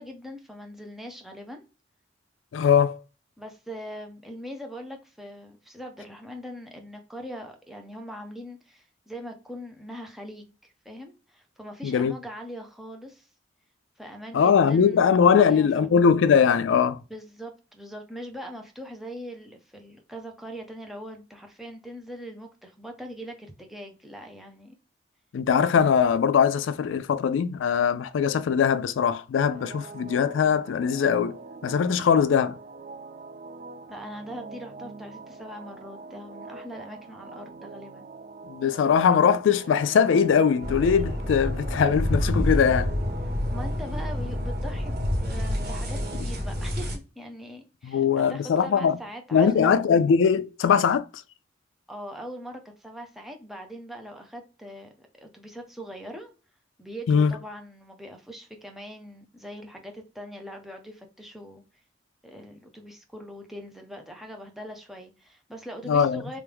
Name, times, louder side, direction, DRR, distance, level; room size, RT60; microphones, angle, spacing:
voice 1, 0.0-1.6 3.4-13.3 14.0-16.0 17.1-24.7 33.9-38.1 43.5-49.7 51.9-56.3 56.8-61.6 62.2-66.4, equal, ahead, 0.8 m, -41 dB
voice 2, 2.5-3.0 11.8-12.1 14.3-17.0 25.3-32.6 38.5-42.9 47.8-49.0 49.3-51.1 57.1-57.3 65.9-66.4, left 7 dB, 85° left, 0.3 m, -21 dB
sound 1, 29.4-46.2, right 3 dB, 40° right, 0.4 m, -43 dB
Rustling Leaves, 40.6-47.0, left 1 dB, 60° right, 1.8 m, -28 dB
3.4 x 3.3 x 3.4 m
head